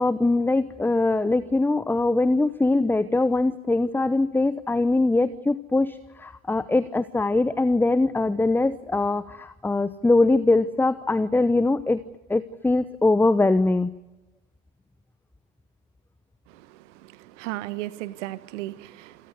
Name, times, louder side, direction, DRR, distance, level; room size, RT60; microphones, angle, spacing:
voice 1, 0.0-12.0 12.3-13.9, left 2 dB, 5° left, 0.9 m, -22 dB
voice 2, 16.5-19.3, right 16 dB, 60° right, 1.6 m, -36 dB
28.0 x 18.0 x 9.7 m
figure-of-eight pair, 75°, 41 cm